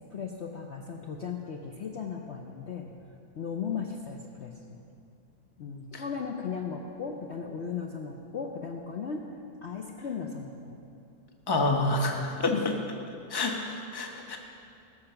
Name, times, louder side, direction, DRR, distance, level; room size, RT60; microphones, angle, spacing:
voice 1, 0.1-2.9 3.3-4.8 5.6-9.2 9.6-10.7 12.5-12.7, left 6 dB, 55° left, 1 dB, 0.9 m, -36 dB
voice 2, 11.5-12.5 13.3-14.4, left 2 dB, 20° left, 2 dB, 0.9 m, -28 dB
18.5 x 6.8 x 5.8 m, 2.7 s
omnidirectional pair, 1.7 m